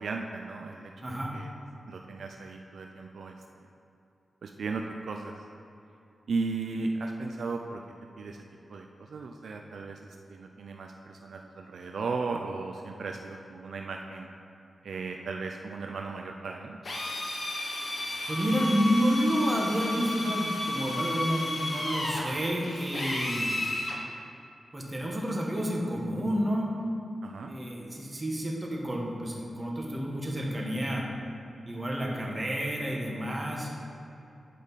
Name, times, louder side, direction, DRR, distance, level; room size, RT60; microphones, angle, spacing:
voice 1, 0.0-1.5 1.8-3.3 4.4-5.3 6.3-7.8 8.2-8.4 8.7-14.3 14.8-16.8 27.2-27.5, right 4 dB, 80° right, 3 dB, 0.4 m, -36 dB
voice 2, 1.0-1.4 18.3-23.6 24.7-26.8 27.4-31.1 31.7-33.7, equal, 30° right, -2 dB, 1.4 m, -30 dB
Drill, 16.8-24.0, left 1 dB, 55° left, 1.2 m, -32 dB
9.2 x 5.0 x 4.1 m, 2.7 s
cardioid pair, 70°, 0 cm